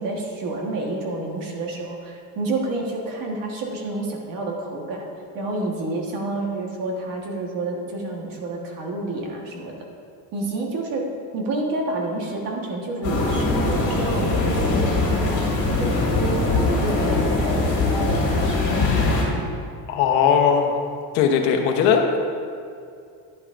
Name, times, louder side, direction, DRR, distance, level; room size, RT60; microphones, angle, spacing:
voice 1, 0.0-5.0 5.3-9.7 10.3-11.0 11.3-19.3, right 2 dB, 45° right, 0 dB, 1.4 m, -29 dB
sound 1, 13.0-19.2, left 2 dB, 30° left, 2.4 m, -21 dB
voice 2, 19.9-20.8 21.1-22.2, left 7 dB, 70° left, 3 dB, 1.1 m, -19 dB
11.0 x 10.0 x 2.6 m, 2.3 s
cardioid pair, 175°, 46 cm